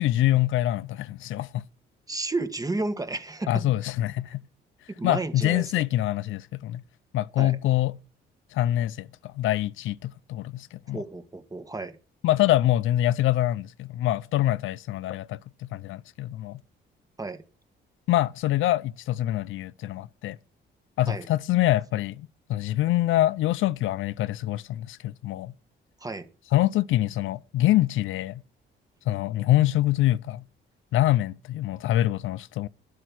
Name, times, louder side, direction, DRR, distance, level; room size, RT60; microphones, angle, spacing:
voice 1, 0.0-1.6 3.5-4.4 5.0-6.8 7.1-8.0 8.5-11.0 12.2-16.6 18.1-20.4 21.0-25.5 26.5-28.4 29.1-30.4 30.9-32.7, left 14 dB, 80° left, 0.6 m, -25 dB
voice 2, 2.1-3.6 4.9-5.7 7.4-7.6 10.9-12.0 17.2-17.4 21.1-21.3 26.0-26.3, right 2 dB, 20° right, 1.6 m, -32 dB
12.0 x 10.0 x 6.1 m
cardioid pair, 90°, 20 cm